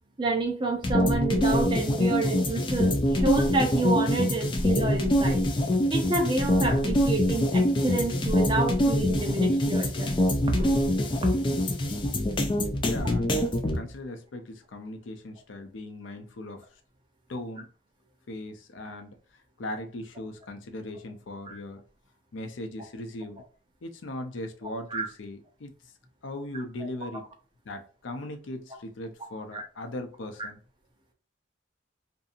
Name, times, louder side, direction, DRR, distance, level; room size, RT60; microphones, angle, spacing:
voice 1, 0.2-5.4 5.9-10.2 10.5-10.8 11.2-11.4 21.5-21.6 24.9-25.0 29.5-29.6 30.4-30.5, right 2 dB, 25° right, 3 dB, 0.5 m, -29 dB
sound 1, 0.8-13.8, left 1 dB, 25° left, 0.3 m, -24 dB
voice 2, 12.8-16.8 17.3-17.7 18.3-21.8 22.3-23.4 23.8-25.7 26.2-27.2 27.7-30.6, left 1 dB, 90° left, 6 dB, 0.5 m, -39 dB
2.6 x 2.6 x 2.4 m, 0.37 s
head